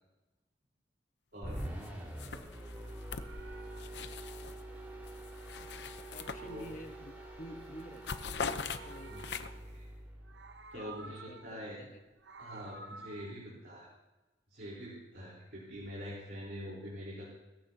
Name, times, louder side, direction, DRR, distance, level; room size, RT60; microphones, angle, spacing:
sound 1, 1.4-10.8, right 1 dB, 10° right, 3.7 m, -46 dB
sound 2, 1.6-1.9 2.2-4.6 5.0-6.9 7.3-7.5 7.8-9.7, left 5 dB, 75° left, 0.7 m, -42 dB
Meow, 2.9-5.5 5.8-7.5 8.3-9.9 10.2-11.6 12.0-13.3, right 3 dB, 90° right, 0.8 m, -53 dB
voice 1, 6.1-8.1 8.8-9.2 10.7-12.0, equal, 45° left, 4 dB, 1.4 m, -49 dB
voice 2, 10.7-11.8 12.4-13.9 14.5-17.2, equal, 70° right, -6 dB, 4.0 m, -44 dB
20.5 x 15.5 x 2.8 m, 1.1 s
head